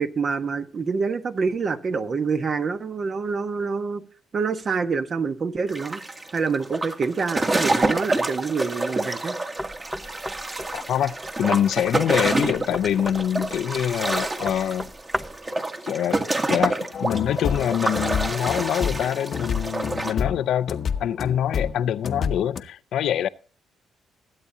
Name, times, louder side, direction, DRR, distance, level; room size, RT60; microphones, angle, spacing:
voice 1, 0.0-4.0 4.3-6.0 6.3-9.4, right 5 dB, 45° right, 1.2 m, -26 dB
sound 1, 5.7-20.1, right 2 dB, 25° right, 1.7 m, -28 dB
Knock, 9.6-15.5, equal, 5° right, 0.8 m, -36 dB
voice 2, 10.7-14.9 15.5-16.2 16.5-23.3, left 10 dB, 75° left, 0.5 m, -25 dB
sound 2, 16.9-22.6, left 6 dB, 50° left, 0.9 m, -29 dB
21.5 x 8.5 x 2.7 m
cardioid pair, 90°, 0 cm